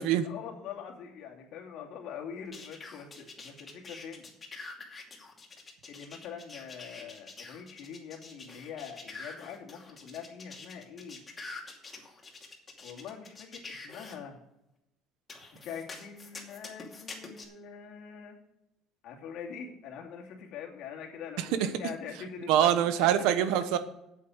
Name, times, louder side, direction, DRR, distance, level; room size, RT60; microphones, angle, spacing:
voice 1, 0.2-4.3 5.9-11.2 12.8-14.4 15.5-18.4 19.0-23.2, left 7 dB, 65° left, 0 dB, 2.6 m, -43 dB
sound 1, 2.5-14.2 15.3-17.5, left 3 dB, 25° left, 2.6 m, -46 dB
voice 2, 21.4-21.7 22.5-23.8, right 10 dB, 80° right, 11 dB, 1.1 m, -25 dB
8.5 x 8.4 x 6.2 m, 0.85 s
cardioid pair, 115°, 0 cm